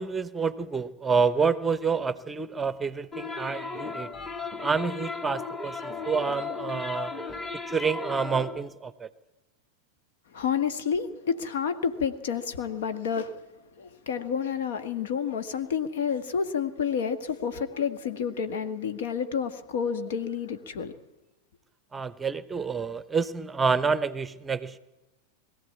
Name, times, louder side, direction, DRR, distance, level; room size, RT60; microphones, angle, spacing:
voice 1, 0.0-4.1 4.6-7.1 7.7-9.1 21.9-24.8, right 5 dB, 15° right, 15 dB, 0.9 m, -28 dB
sound 1, 3.1-8.6, left 4 dB, 15° left, 2.2 m, -36 dB
voice 2, 10.3-13.4 13.8-20.9, left 7 dB, 55° left, 10 dB, 1.5 m, -29 dB
21.5 x 15.0 x 8.5 m, 1.0 s
figure-of-eight pair, 90°, 0 cm